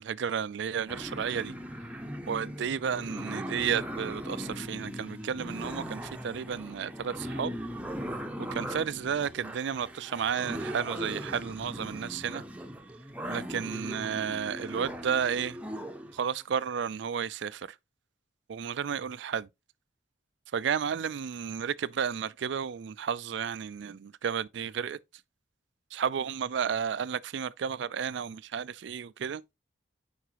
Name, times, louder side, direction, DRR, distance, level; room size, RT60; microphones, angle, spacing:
voice 1, 0.0-1.5 2.3-7.6 8.4-12.4 13.3-15.6 16.1-17.7 18.5-19.5 20.5-25.0 25.9-29.4, right 7 dB, 65° right, 0.4 m, -32 dB
sound 1, 0.9-16.2, equal, 5° right, 0.7 m, -39 dB
9.5 x 4.7 x 2.9 m
head